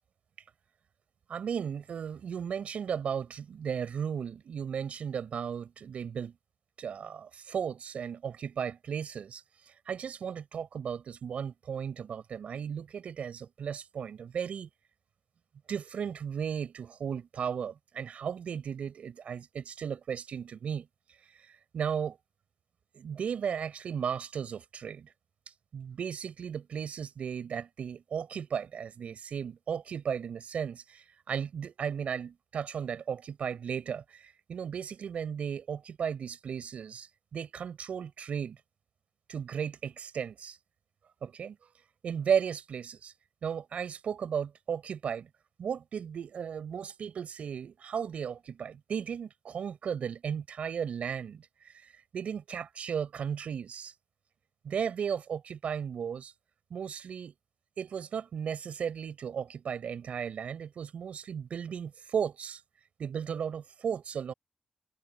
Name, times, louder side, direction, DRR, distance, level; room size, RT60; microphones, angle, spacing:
voice 1, 1.3-6.3 6.8-9.4 9.9-14.7 15.7-20.9 21.7-22.2 22.9-25.1 25.7-38.6 39.3-40.6 41.2-41.7 42.0-43.1 43.4-45.3 45.6-51.7 52.1-53.9 54.6-56.3 56.7-57.3 57.8-62.6 63.0-64.3, right 7 dB, 65° right, 4.9 m, -35 dB
wide cardioid pair, 130°, 2 cm